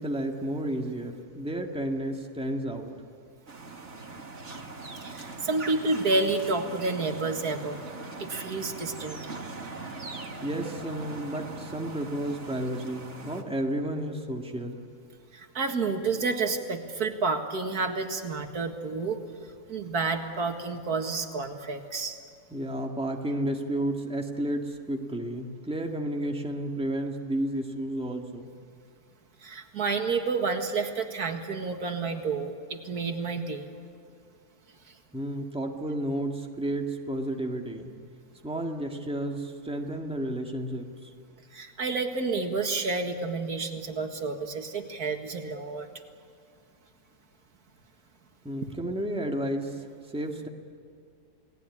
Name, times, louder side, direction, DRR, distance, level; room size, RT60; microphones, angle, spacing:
voice 1, 0.0-2.9 10.4-14.8 22.5-28.5 35.1-38.0 38.4-41.1 48.4-49.8 50.1-50.5, right 1 dB, 5° right, 1 dB, 1.9 m, -32 dB
sound 1, 3.5-13.4, right 3 dB, 50° right, 2.3 m, -41 dB
voice 2, 5.0-7.8 8.2-9.2 15.3-19.2 19.7-22.2 29.4-33.7 34.9-35.0 41.5-45.9, right 3 dB, 85° right, 4 dB, 2.4 m, -30 dB
29.5 x 19.0 x 9.8 m, 2.2 s
omnidirectional pair, 1.6 m